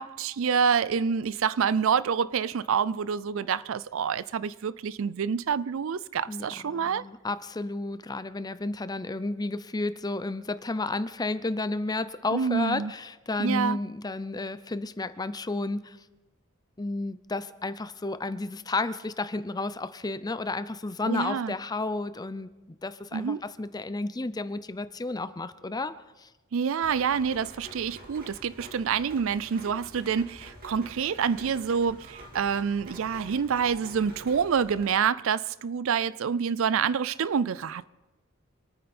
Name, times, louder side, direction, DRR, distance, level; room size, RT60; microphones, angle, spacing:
voice 1, 0.0-7.0 12.3-12.9 13.4-13.8 21.1-21.5 23.1-23.4 26.5-37.9, right 6 dB, 65° right, 0.4 m, -27 dB
voice 2, 6.3-16.0 16.8-25.9 26.2-26.3, left 2 dB, 20° left, 0.5 m, -32 dB
Rain, 26.8-34.8, right 1 dB, 45° right, 2.3 m, -48 dB
26.5 x 9.5 x 4.3 m
head